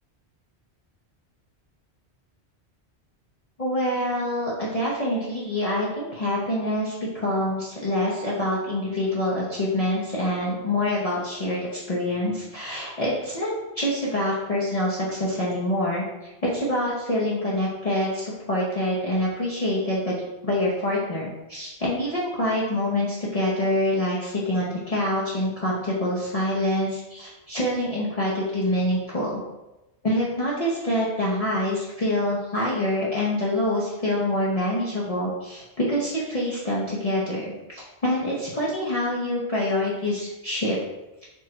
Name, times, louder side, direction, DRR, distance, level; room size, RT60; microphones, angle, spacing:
voice 1, 3.6-20.1 20.4-29.4 30.0-40.8, left 1 dB, 40° left, -7 dB, 0.8 m, -26 dB
4.4 x 2.4 x 4.2 m, 0.99 s
omnidirectional pair, 1.1 m